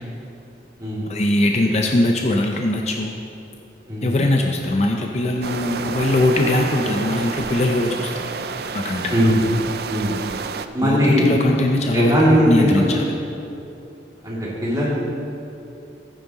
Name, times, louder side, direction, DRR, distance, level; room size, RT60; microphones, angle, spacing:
voice 1, 1.1-3.1 4.0-8.3 8.7-9.2 10.8-13.0, left 1 dB, 35° left, 2 dB, 0.5 m, -21 dB
sound 1, 5.4-10.7, right 5 dB, 55° right, 0.4 m, -29 dB
voice 2, 9.1-9.4 9.9-10.1 10.7-11.3 11.9-12.7 14.2-15.1, equal, 20° right, -8 dB, 2.6 m, -19 dB
14.0 x 9.1 x 3.0 m, 2.8 s
head